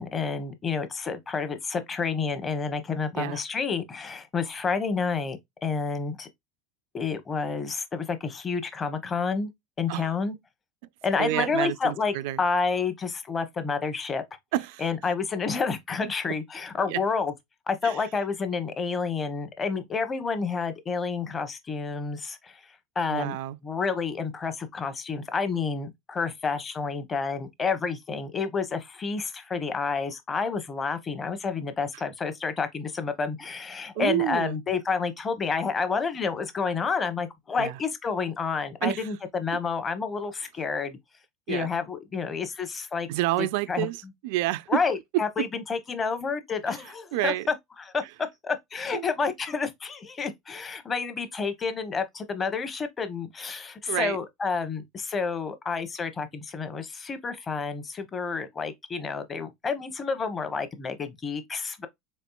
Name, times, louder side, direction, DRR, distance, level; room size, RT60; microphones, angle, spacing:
voice 1, 0.0-6.3 6.9-9.5 9.8-10.4 11.0-14.2 14.8-17.3 17.7-22.6 23.0-23.4 23.6-41.0 41.5-43.1 43.7-43.9 44.7-48.0 48.4-61.9, left 5 dB, 20° left, 0.8 m, -29 dB
voice 2, 11.2-12.4 14.5-14.8 16.9-17.0 17.8-18.0 23.1-23.6 34.0-34.6 37.6-37.8 38.8-39.1 41.5-41.7 43.1-44.8 45.1-45.5 46.7-46.8 47.1-47.5 48.9-49.1 53.9-54.2, right 15 dB, 70° right, 0.3 m, -29 dB
4.3 x 3.6 x 2.2 m
supercardioid pair, 140°, 0 cm